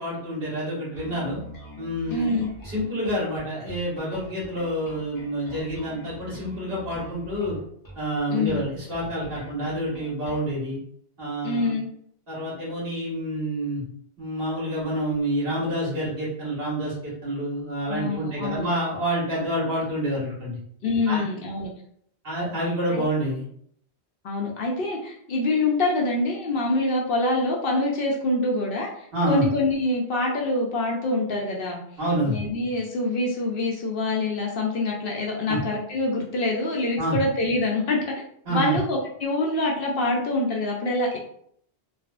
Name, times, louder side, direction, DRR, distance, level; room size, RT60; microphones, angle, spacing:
voice 1, 0.0-1.4 1.8-7.6 7.9-10.8 11.2-11.7 12.3-13.8 14.2-20.6 21.1-21.2 22.2-23.4 29.1-29.5 32.0-32.4 35.5-35.6 37.0-37.2 38.4-38.8, right 1 dB, 60° right, -6 dB, 1.5 m, -28 dB
Bass guitar, 0.9-10.5, equal, 30° left, 0.4 m, -44 dB
voice 2, 2.1-2.5 8.3-8.6 11.4-11.9 17.9-18.7 20.8-21.7 22.9-23.0 24.2-31.8 32.2-38.2 38.5-41.2, left 2 dB, 65° left, -1 dB, 0.7 m, -25 dB
3.2 x 2.0 x 2.4 m, 0.66 s
omnidirectional pair, 1.1 m